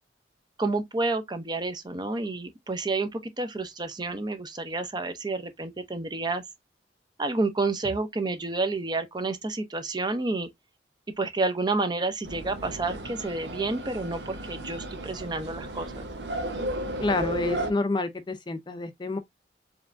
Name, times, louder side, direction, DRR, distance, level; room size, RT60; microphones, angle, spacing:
voice 1, 0.6-6.4 7.2-10.5 11.2-16.0, right 3 dB, 25° right, 0.7 m, -29 dB
sound 1, 12.2-17.7, right 1 dB, 80° right, 1.0 m, -34 dB
voice 2, 17.0-19.2, left 2 dB, 25° left, 0.5 m, -28 dB
4.7 x 3.2 x 2.6 m
head